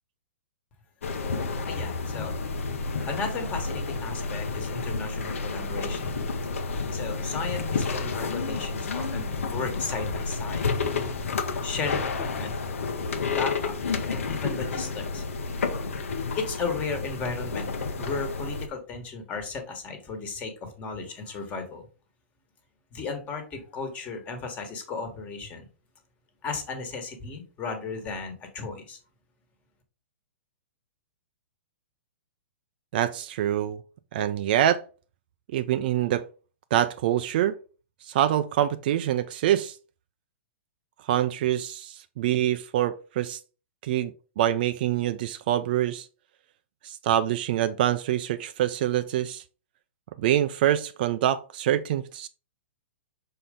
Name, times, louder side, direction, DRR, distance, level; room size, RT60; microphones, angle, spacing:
sound 1, 1.0-18.7, left 4 dB, 90° left, 1.1 m, -30 dB
voice 1, 1.7-2.3 3.1-6.2 6.9-10.7 11.4-12.6 13.3-13.8 14.1-15.2 16.4-17.7 18.0-21.8 22.9-25.7 26.4-29.0, left 4 dB, 20° left, 1.4 m, -35 dB
voice 2, 32.9-33.8 34.1-34.8 35.5-36.2 36.7-37.5 38.1-39.8 41.1-43.4 43.8-46.1 46.8-49.4 50.2-52.3, right 12 dB, 45° right, 0.4 m, -25 dB
6.5 x 4.3 x 3.7 m
hypercardioid pair, 155°, 7 cm